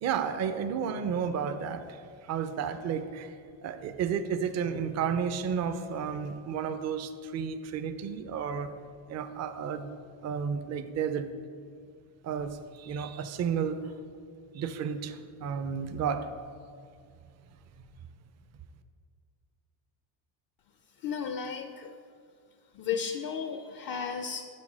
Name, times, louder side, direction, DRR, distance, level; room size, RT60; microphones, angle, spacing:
voice 1, 0.0-3.4 3.6-8.7 9.1-9.9 10.2-11.3 12.2-13.9 14.5-16.3, right 7 dB, 35° right, 9 dB, 0.4 m, -32 dB
voice 2, 21.0-21.9 22.8-24.4, left 7 dB, 45° left, 7 dB, 0.4 m, -34 dB
6.3 x 4.3 x 6.0 m, 2.3 s
cardioid pair, 115°, 49 cm